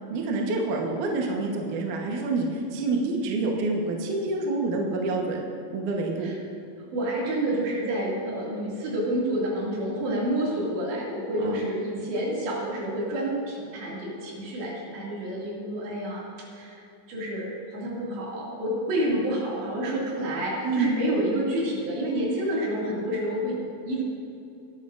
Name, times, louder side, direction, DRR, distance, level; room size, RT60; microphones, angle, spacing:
voice 1, 0.1-5.4 5.7-6.3 10.1-10.3 11.4-11.6 20.6-20.9, right 3 dB, 65° right, 0 dB, 2.2 m, -27 dB
voice 2, 6.9-16.2 16.5-16.8 17.1-23.6 23.9-24.0, right 1 dB, 80° right, -5 dB, 4.7 m, -29 dB
19.5 x 11.0 x 2.6 m, 2.7 s
omnidirectional pair, 5.0 m